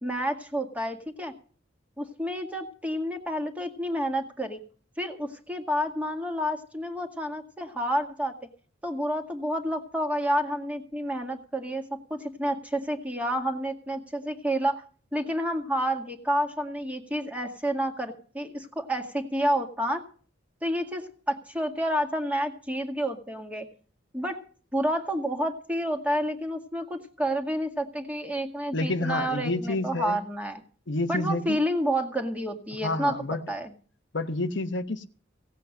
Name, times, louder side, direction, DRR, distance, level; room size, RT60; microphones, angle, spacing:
voice 1, 0.0-1.3 2.0-4.6 5.0-8.3 8.8-14.8 15.1-20.0 20.6-23.7 24.1-24.4 24.7-30.6 31.1-33.1 33.5-33.7, equal, 5° right, 3 dB, 1.9 m, -29 dB
voice 2, 28.7-30.2 30.9-31.6 32.8-33.4 34.1-35.0, left 2 dB, 65° left, 8 dB, 1.0 m, -29 dB
17.0 x 8.3 x 6.5 m, 0.42 s
head